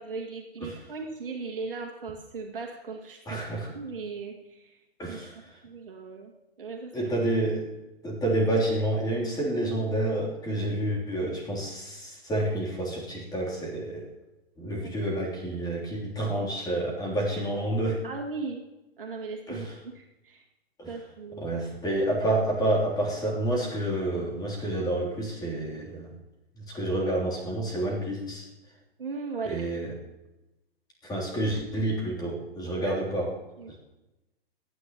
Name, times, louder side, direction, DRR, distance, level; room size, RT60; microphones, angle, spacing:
voice 1, 0.0-3.4 3.7-4.8 5.1-5.2 5.6-6.3 6.6-7.1 14.7-14.9 18.0-18.6 19.0-20.4 20.9-21.6 29.0-29.7 32.8-33.0 33.6-33.7, right 4 dB, 60° right, 1 dB, 2.2 m, -38 dB
voice 2, 3.3-3.7 5.0-5.3 6.9-7.7 8.0-14.1 14.6-18.0 19.5-19.7 20.8-20.9 21.4-26.1 26.6-28.5 29.4-29.9 31.0-33.3, right 1 dB, 10° left, -3 dB, 3.3 m, -29 dB
28.0 x 9.7 x 3.1 m, 0.99 s
figure-of-eight pair, 110°, 31 cm